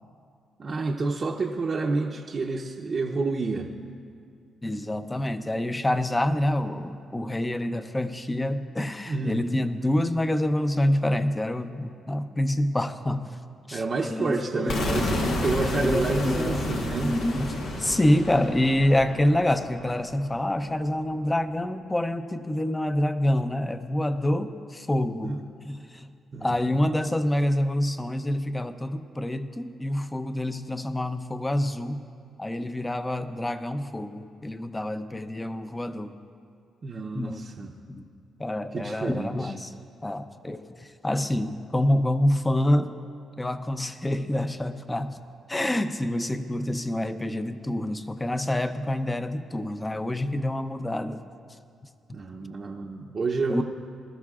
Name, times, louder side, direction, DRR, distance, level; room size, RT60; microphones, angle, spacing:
voice 1, 0.6-3.7 8.8-9.4 13.7-17.1 25.2-25.4 26.3-26.5 36.8-37.7 38.7-39.5 52.1-53.6, right 3 dB, 40° right, -2 dB, 0.7 m, -29 dB
voice 2, 4.6-13.3 13.7-25.4 25.6-26.1 26.4-32.0 32.4-36.1 37.1-38.1 38.4-39.7 40.0-42.9 43.4-45.2 45.5-51.2 53.5-53.6, left 1 dB, 15° left, 10 dB, 0.6 m, -27 dB
sound 1, 14.7-20.6, left 1 dB, 85° left, 1.5 m, -31 dB
20.5 x 13.0 x 2.4 m, 2.3 s
cardioid pair, 95°, 0 cm